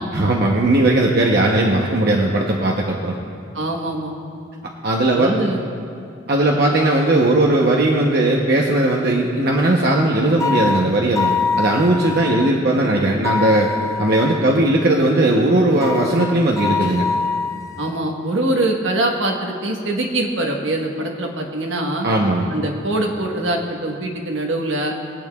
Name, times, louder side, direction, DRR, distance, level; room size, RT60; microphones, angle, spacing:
voice 1, 0.1-3.2 4.8-5.3 6.3-13.7 14.0-17.0 22.0-22.5, right 1 dB, 55° right, -1 dB, 0.8 m, -17 dB
voice 2, 3.5-4.2 5.1-5.6 17.8-22.1 22.5-24.9, right 1 dB, 75° right, 1 dB, 1.2 m, -23 dB
sound 1, 10.4-12.5 13.2-14.5 15.8-18.0, left 4 dB, 15° left, 0.4 m, -24 dB
22.5 x 8.8 x 2.3 m, 2.4 s
head